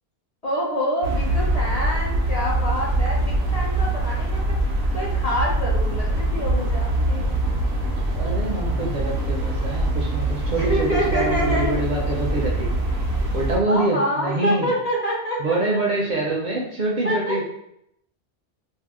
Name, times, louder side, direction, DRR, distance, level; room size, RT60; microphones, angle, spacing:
voice 1, 0.4-4.6 4.9-7.3 10.6-11.7 13.7-15.8 17.0-17.4, equal, 45° left, -4 dB, 0.6 m, -26 dB
sound 1, 1.0-13.6, right 1 dB, 90° right, 0.9 m, -23 dB
voice 2, 8.2-12.8 13.3-14.7 15.4-17.4, right 2 dB, 55° right, -1 dB, 0.6 m, -25 dB
2.7 x 2.0 x 3.5 m, 0.76 s
omnidirectional pair, 1.0 m